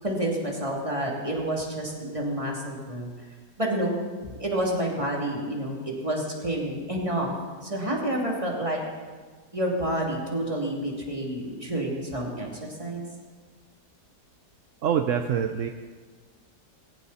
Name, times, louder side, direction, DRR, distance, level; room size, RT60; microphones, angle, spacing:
voice 1, 0.0-3.1 3.6-3.9 4.2-7.3 7.6-8.8 9.5-13.0, right 1 dB, 15° right, -2 dB, 2.9 m, -29 dB
voice 2, 14.8-15.7, right 8 dB, 60° right, 7 dB, 0.8 m, -25 dB
20.5 x 16.5 x 4.2 m, 1.5 s
omnidirectional pair, 1.9 m